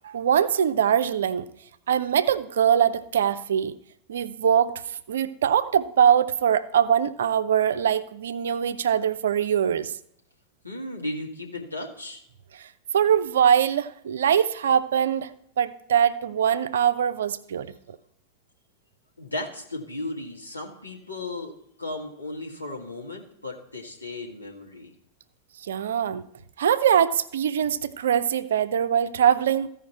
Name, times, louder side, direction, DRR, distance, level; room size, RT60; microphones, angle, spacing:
voice 1, 0.0-1.5 1.9-3.8 4.1-9.9 12.5-12.7 12.9-15.3 15.6-18.0 25.7-26.3 26.6-29.7, right 8 dB, 65° right, 13 dB, 0.5 m, -22 dB
voice 2, 10.6-12.2 19.2-21.5 21.8-24.9, left 2 dB, 85° left, -2 dB, 1.8 m, -35 dB
15.0 x 5.0 x 4.3 m, 0.73 s
figure-of-eight pair, 90°, 0 cm